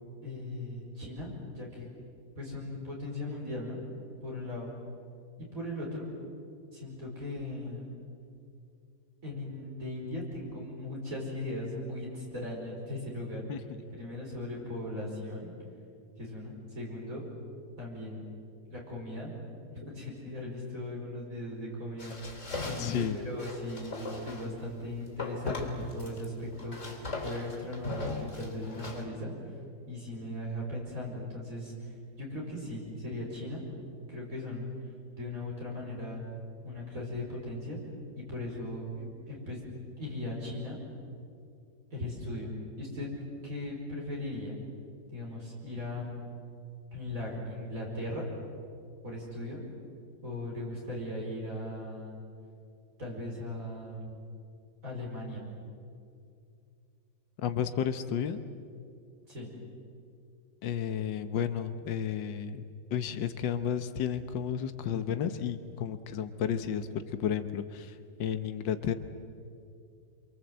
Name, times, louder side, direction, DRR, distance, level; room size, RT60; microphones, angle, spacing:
voice 1, 0.2-1.9 2.4-3.8 4.2-4.7 5.4-6.1 6.7-7.9 9.2-13.5 14.0-15.5 16.2-17.2 17.8-18.2 18.7-19.3 19.6-22.3 22.6-29.3 29.9-33.7 34.1-34.7 35.2-36.2 36.6-37.8 38.1-39.6 40.0-40.8 41.9-42.5 42.8-43.1 43.4-44.6 45.1-46.2 46.9-48.2 49.0-49.6 50.2-52.2 53.0-54.1 54.8-55.5 59.3-59.6, left 1 dB, 45° right, -3 dB, 5.5 m, -38 dB
sound 1, 22.0-24.5 25.2-26.3 26.5-29.0, left 3 dB, 40° left, 3.5 m, -38 dB
voice 2, 22.8-23.2 57.4-58.4 60.6-62.7 62.9-68.9, left 8 dB, 80° left, 10 dB, 1.7 m, -32 dB
26.5 x 24.0 x 7.9 m, 2.4 s
omnidirectional pair, 2.0 m